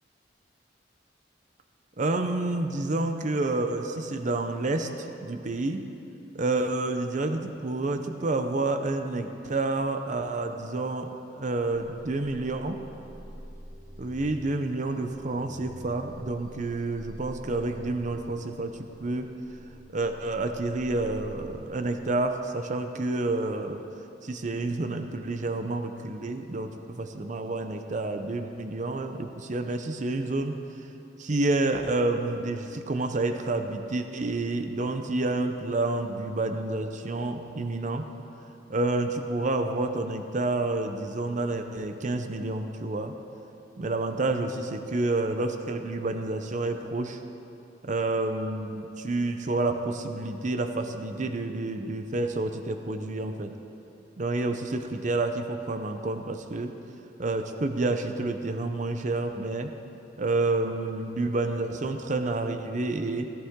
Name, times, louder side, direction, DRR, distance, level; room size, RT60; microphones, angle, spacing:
voice 1, 2.0-5.9 6.3-11.1 11.4-12.8 14.0-19.3 19.9-23.8 24.2-30.6 31.2-38.0 38.7-43.2 43.8-47.2 47.8-53.5 54.2-56.7 57.2-59.7 60.2-63.3, right 2 dB, 45° right, 7 dB, 0.7 m, -29 dB
sound 1, 11.7-21.6, equal, 10° right, 3.5 m, -47 dB
16.5 x 14.5 x 3.7 m, 2.8 s
head